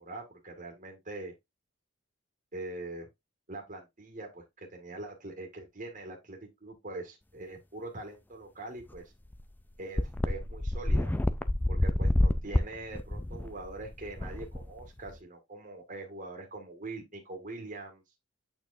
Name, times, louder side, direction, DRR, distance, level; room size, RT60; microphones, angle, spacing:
voice 1, 0.0-1.3 2.5-3.1 3.5-9.1 9.8-11.1 11.7-18.0, right 2 dB, 40° right, 1.9 m, -43 dB
sound 1, 8.9-9.0 9.3-9.4 10.0-15.1, left 1 dB, 10° left, 0.3 m, -28 dB
8.5 x 4.5 x 2.6 m
head